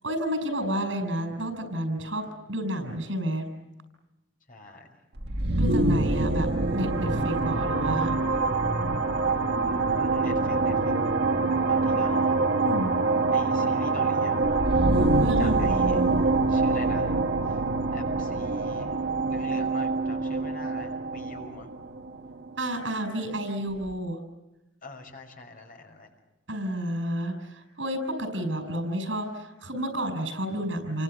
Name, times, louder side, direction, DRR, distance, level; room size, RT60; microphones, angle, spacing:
voice 1, 0.0-3.5 5.5-8.2 12.6-12.9 15.2-16.1 22.6-24.2 26.5-31.0, right 1 dB, 85° right, 8 dB, 6.4 m, -30 dB
voice 2, 4.5-4.9 9.6-10.9 11.7-12.4 13.3-14.6 15.4-16.0 16.5-17.2 17.9-18.9 19.3-21.7 24.8-26.1, left 2 dB, 50° left, 4 dB, 5.8 m, -44 dB
sound 1, 5.2-22.8, right 3 dB, 60° right, 1.6 m, -25 dB
29.0 x 24.5 x 8.1 m, 0.97 s
head